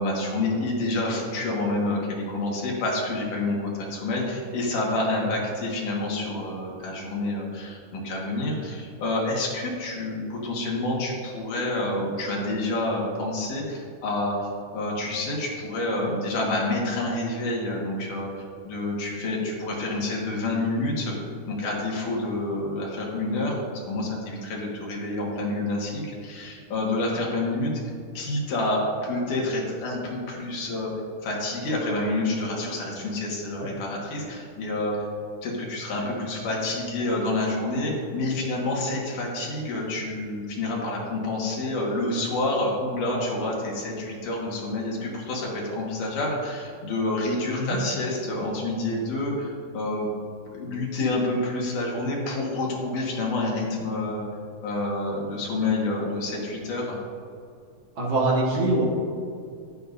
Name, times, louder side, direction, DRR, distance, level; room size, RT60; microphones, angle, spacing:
voice 1, 0.0-21.1 21.4-27.7 28.1-30.9 31.2-35.1 35.4-50.1 50.5-54.3 54.6-56.9, left 2 dB, 80° left, -3 dB, 3.3 m, -28 dB
voice 2, 58.0-58.8, right 2 dB, 45° right, -5 dB, 2.2 m, -24 dB
11.5 x 10.0 x 2.7 m, 2.4 s
omnidirectional pair, 3.5 m